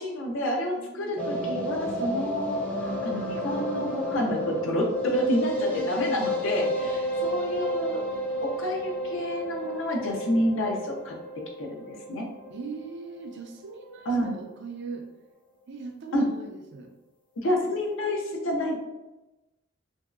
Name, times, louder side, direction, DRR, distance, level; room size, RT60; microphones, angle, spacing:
voice 1, 0.0-2.6 3.0-8.0 8.4-11.1 11.6-12.3 14.1-14.3 16.1-16.3 17.4-18.8, equal, 70° left, 0 dB, 0.6 m, -29 dB
voice 2, 0.6-1.2 5.7-6.8 12.5-15.1 15.7-16.9 18.7-18.8, right 4 dB, 55° right, 4 dB, 0.4 m, -41 dB
sound 1, 1.2-13.3 13.6-13.7 13.9-14.0 14.3-14.4, equal, 5° left, 0.5 m, -31 dB
2.9 x 2.7 x 2.3 m, 1.0 s
head